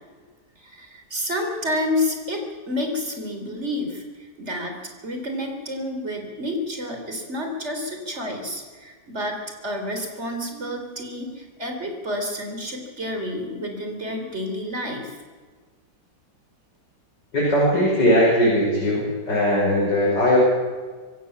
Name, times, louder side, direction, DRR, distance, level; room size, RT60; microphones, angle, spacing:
voice 1, 0.6-4.8 5.0-9.4 9.6-15.2, left 1 dB, 35° right, 4 dB, 4.0 m, -29 dB
voice 2, 17.3-20.4, equal, 70° left, -5 dB, 6.2 m, -19 dB
25.5 x 15.5 x 7.2 m, 1.5 s
omnidirectional pair, 1.9 m